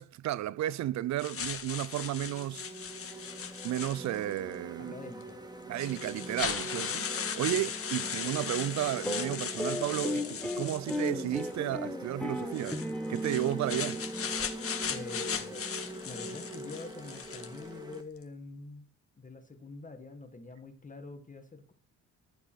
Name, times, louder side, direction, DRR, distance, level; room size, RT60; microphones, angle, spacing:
voice 1, 0.0-2.7 3.6-4.9 5.7-12.8 13.1-14.0, right 13 dB, 65° right, 0.6 m, -33 dB
sound 1, 1.2-4.4 5.2-5.3 5.8-11.5 12.5-17.7, left 7 dB, 50° left, 1.8 m, -37 dB
sound 2, 1.8-18.0, right 1 dB, 15° right, 2.0 m, -44 dB
voice 2, 4.9-5.5 7.5-7.6 14.9-15.6 16.1-18.9 19.2-21.7, left 3 dB, 25° left, 1.8 m, -45 dB
sound 3, 9.0-15.6, left 1 dB, 5° left, 1.2 m, -36 dB
14.5 x 5.2 x 6.3 m
cardioid pair, 90°, 30 cm